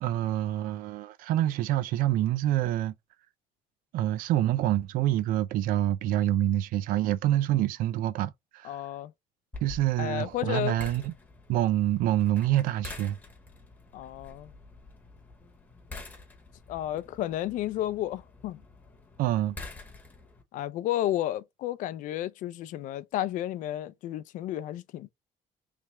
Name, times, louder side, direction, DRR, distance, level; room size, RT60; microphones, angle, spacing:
voice 1, 0.0-2.9 3.9-8.8 9.6-11.1 11.5-13.2 19.2-19.6, right 13 dB, 70° right, 0.4 m, -26 dB
voice 2, 8.6-9.1 10.0-10.8 13.9-14.5 16.7-18.6 20.5-25.1, left 13 dB, 60° left, 0.4 m, -32 dB
sound 1, 9.5-20.4, left 3 dB, 10° left, 0.8 m, -47 dB
3.3 x 3.3 x 3.0 m
cardioid pair, 165°, 15 cm